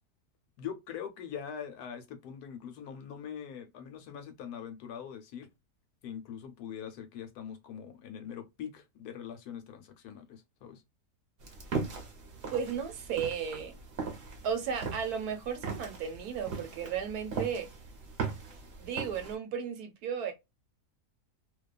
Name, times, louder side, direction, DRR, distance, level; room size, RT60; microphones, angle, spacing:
voice 1, 0.6-5.5 6.0-10.8, left 8 dB, 75° left, 1.1 m, -43 dB
sound 1, 11.4-19.3, right 4 dB, 45° right, 0.9 m, -39 dB
voice 2, 12.5-13.8 14.4-17.7 18.8-20.3, right 7 dB, 70° right, 1.2 m, -34 dB
2.7 x 2.3 x 2.2 m
omnidirectional pair, 1.7 m